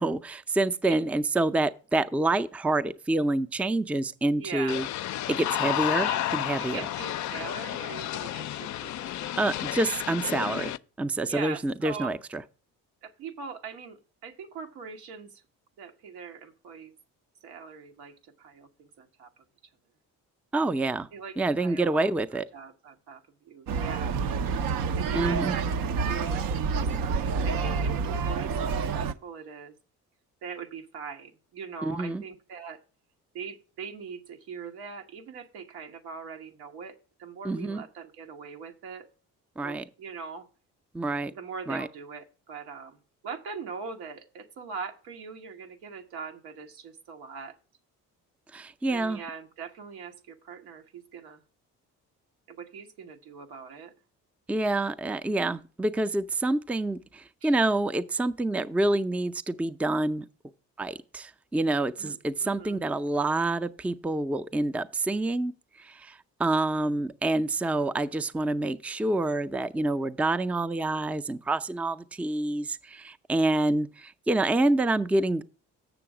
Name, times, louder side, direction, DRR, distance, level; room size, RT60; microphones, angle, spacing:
voice 1, 0.0-4.9 5.3-6.8 9.4-10.7 11.0-12.4 20.5-21.1 21.4-22.5 25.1-25.5 31.8-32.2 37.4-37.8 39.6-39.8 40.9-41.3 41.7-41.9 48.5-49.2 54.5-60.2 60.8-65.5 65.8-75.4, right 2 dB, 5° right, 0.4 m, -27 dB
voice 2, 4.4-4.9 6.0-6.2 6.6-9.4 11.3-12.2 13.0-15.4 15.8-16.9 17.4-19.3 21.1-24.1 25.0-25.7 26.0-29.7 30.4-32.8 33.3-39.1 39.6-40.5 41.3-47.5 48.9-51.4 52.5-53.9 57.4-57.6 62.0-62.8, right 5 dB, 80° right, 1.2 m, -41 dB
sound 1, 4.7-10.8, left 13 dB, 50° left, 0.4 m, -31 dB
sound 2, 23.7-29.1, right 5 dB, 65° right, 0.7 m, -28 dB
7.0 x 7.0 x 4.8 m
supercardioid pair, 60°, 37 cm